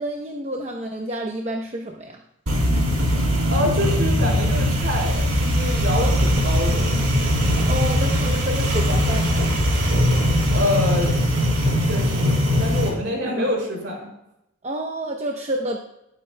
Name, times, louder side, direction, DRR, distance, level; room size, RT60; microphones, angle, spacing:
voice 1, 0.0-2.2 7.7-9.5 13.4-13.5 14.6-15.8, right 1 dB, 30° right, 1 dB, 0.8 m, -29 dB
sound 1, 2.5-12.9, equal, 90° right, 3.5 m, -20 dB
voice 2, 3.5-7.0 10.5-11.1 11.8-14.1, left 1 dB, 60° right, -3 dB, 4.4 m, -26 dB
19.5 x 8.3 x 2.2 m, 0.84 s
head